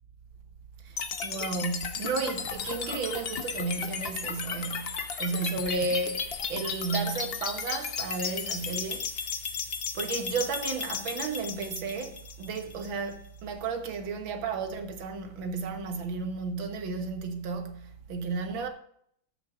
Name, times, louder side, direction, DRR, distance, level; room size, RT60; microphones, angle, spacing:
voice 1, 0.8-9.3 9.9-18.7, right 4 dB, 75° right, 2.0 m, -33 dB
sound 1, 1.0-13.0, left 6 dB, 65° left, 0.6 m, -34 dB
13.5 x 6.0 x 3.7 m
omnidirectional pair, 2.2 m